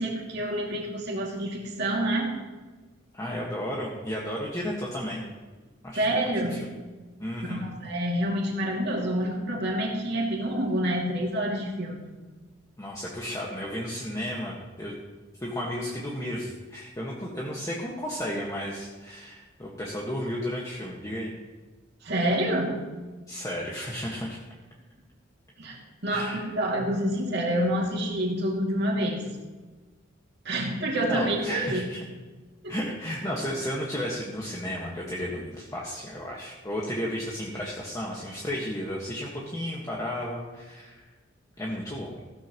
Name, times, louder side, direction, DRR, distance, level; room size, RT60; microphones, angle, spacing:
voice 1, 0.0-2.3 6.0-6.5 7.5-12.2 22.0-22.7 25.6-25.8 26.0-29.3 30.4-31.9 32.6-32.7, right 1 dB, 60° right, -2 dB, 2.5 m, -27 dB
voice 2, 3.1-5.2 5.8-6.6 7.2-7.7 12.8-15.0 15.4-21.3 23.3-24.4 26.1-26.4 30.9-32.0 32.7-41.0 41.6-42.2, equal, 15° left, -4 dB, 1.6 m, -33 dB
15.5 x 13.5 x 3.1 m, 1.3 s
head